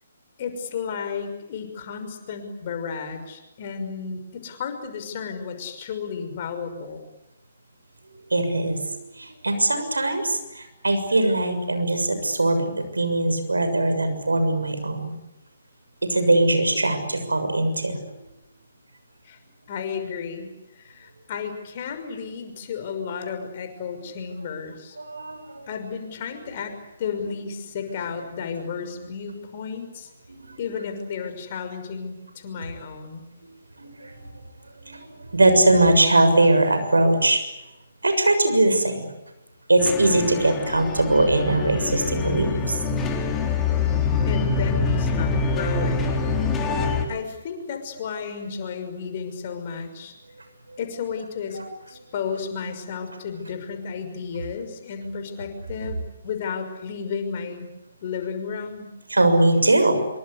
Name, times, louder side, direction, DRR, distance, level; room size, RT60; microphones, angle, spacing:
voice 1, 0.4-7.0 19.2-19.4 19.7-25.0 25.7-30.1 30.6-33.3 44.3-46.2 47.1-50.1 50.8-51.6 51.9-57.7 58.0-58.9, left 6 dB, 40° left, 7 dB, 6.0 m, -33 dB
voice 2, 8.3-15.1 16.1-18.0 25.0-25.7 30.3-30.6 33.8-34.2 34.8-35.1 35.3-37.4 38.0-39.1 39.7-42.8 46.4-46.5 51.5-51.6 59.1-60.0, right 2 dB, 80° right, 8 dB, 6.7 m, -21 dB
sound 1, 39.8-47.1, left 4 dB, 15° left, 4.0 m, -25 dB
26.5 x 24.5 x 8.4 m, 0.95 s
figure-of-eight pair, 135°, 0 cm